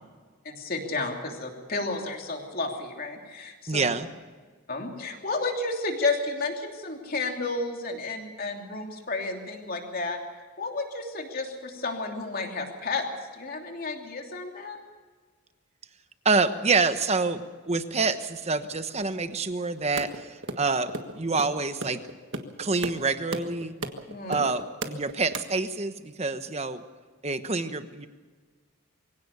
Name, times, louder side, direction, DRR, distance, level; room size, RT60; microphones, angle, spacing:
voice 1, 0.4-3.8 4.7-10.2 10.6-13.1 13.3-14.8 24.1-24.5, left 3 dB, 45° left, 2 dB, 3.1 m, -32 dB
voice 2, 3.7-4.1 16.2-22.0 22.6-23.7 24.3-26.8 27.2-28.1, right 4 dB, 30° right, 10 dB, 1.1 m, -27 dB
sound 1, 20.0-25.4, right 2 dB, 60° right, 1.6 m, -34 dB
23.5 x 16.5 x 7.0 m, 1.5 s
head